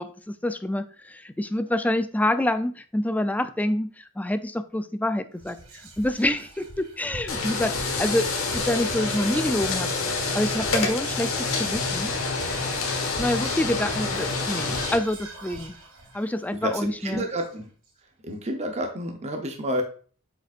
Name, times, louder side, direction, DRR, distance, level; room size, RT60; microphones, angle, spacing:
voice 1, 0.0-5.6 6.0-8.2 8.5-9.9 10.3-12.1 13.2-15.7 16.1-17.3, left 1 dB, 5° left, 10 dB, 0.4 m, -27 dB
Whispering, 5.4-17.9, right 2 dB, 80° right, 1.7 m, -43 dB
sound 1, 7.3-15.0, left 3 dB, 75° left, 1.4 m, -27 dB
voice 2, 16.6-17.7 18.2-19.8, equal, 30° right, 4 dB, 0.8 m, -29 dB
7.7 x 5.0 x 2.5 m, 0.42 s
head